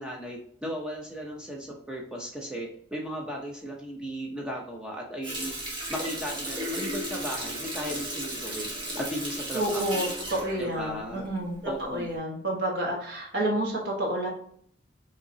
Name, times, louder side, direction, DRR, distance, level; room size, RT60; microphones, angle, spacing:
voice 1, 0.0-5.6 5.9-8.7 9.0-9.9 10.6-11.2 11.6-12.1, equal, 5° right, -1 dB, 0.6 m, -36 dB
Water tap faucet, 5.2-11.6 12.0-12.2, right 1 dB, 25° right, 1.2 m, -35 dB
voice 2, 9.5-14.3, right 1 dB, 65° right, -1 dB, 1.5 m, -29 dB
5.5 x 2.9 x 2.8 m, 0.63 s
head